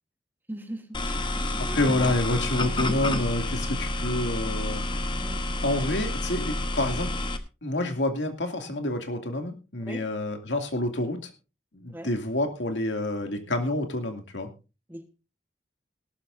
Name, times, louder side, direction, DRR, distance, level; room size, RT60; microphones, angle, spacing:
voice 1, 0.5-1.8 5.2-5.4 9.8-10.0 11.9-12.1 14.9-15.1, right 1 dB, 10° right, 7 dB, 1.3 m, -40 dB
sound 1, 0.9-7.4, left 1 dB, 25° left, 1.0 m, -29 dB
voice 2, 1.7-4.8 5.6-7.1 7.6-11.3 11.7-14.5, left 1 dB, 90° left, 5 dB, 2.4 m, -28 dB
18.0 x 12.5 x 2.6 m, 0.30 s
head